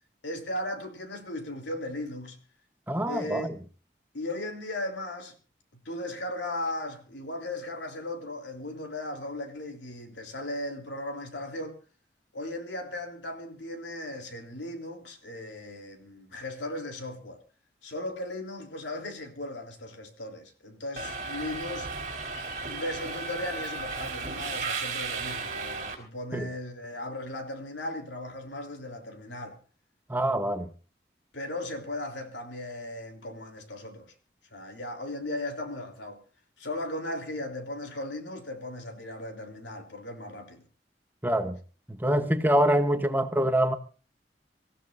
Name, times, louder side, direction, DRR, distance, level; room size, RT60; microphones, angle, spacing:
voice 1, 0.2-2.4 3.1-3.5 4.1-5.3 5.9-11.8 12.3-17.4 17.8-21.9 22.7-29.6 31.3-34.1 34.5-36.2 36.6-40.6, left 1 dB, 85° left, 3.4 m, -37 dB
voice 2, 2.9-3.5 26.3-26.5 30.1-30.7 41.2-41.6 41.9-43.7, right 1 dB, 10° right, 1.1 m, -25 dB
Subway metro underground, 21.0-25.9, right 4 dB, 45° right, 4.2 m, -34 dB
25.5 x 15.5 x 2.6 m
head